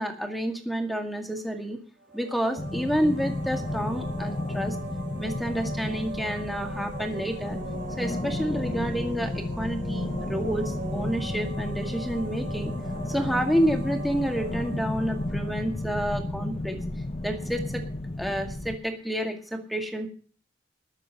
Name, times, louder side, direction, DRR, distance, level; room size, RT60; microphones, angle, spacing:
voice 1, 0.0-1.8 2.1-4.8 5.2-7.6 8.0-12.7 13.1-16.8 17.2-17.8 18.2-20.1, equal, ahead, 3 dB, 1.8 m, -29 dB
sound 1, 2.0-16.7, right 2 dB, 45° right, 7.8 m, -42 dB
sound 2, 2.6-18.8, left 1 dB, 30° left, 0.7 m, -33 dB
20.0 x 6.8 x 6.4 m, 0.41 s
head